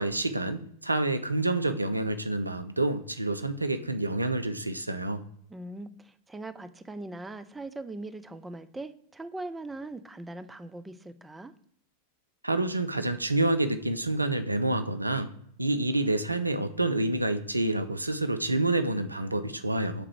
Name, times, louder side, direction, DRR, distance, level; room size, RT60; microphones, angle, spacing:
voice 1, 0.0-5.2 12.4-15.3 15.6-20.1, right 2 dB, 85° right, 9 dB, 0.5 m, -28 dB
voice 2, 5.5-11.5, right 2 dB, 10° right, 11 dB, 0.4 m, -40 dB
6.6 x 3.7 x 4.6 m, 0.69 s
figure-of-eight pair, 90°, 0 cm